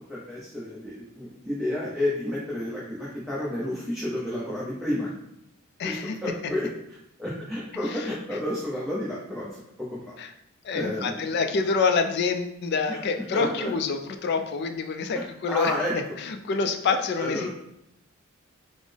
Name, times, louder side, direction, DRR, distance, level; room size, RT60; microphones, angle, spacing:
voice 1, 0.1-5.1 5.8-10.1 10.7-11.4 12.9-13.0 13.3-13.7 15.5-16.0 17.2-17.5, left 1 dB, ahead, -7 dB, 0.5 m, -31 dB
voice 2, 5.8-6.2 7.9-8.0 10.2-10.3 10.6-17.5, left 4 dB, 50° left, 7 dB, 0.3 m, -27 dB
3.6 x 2.0 x 3.3 m, 0.78 s
head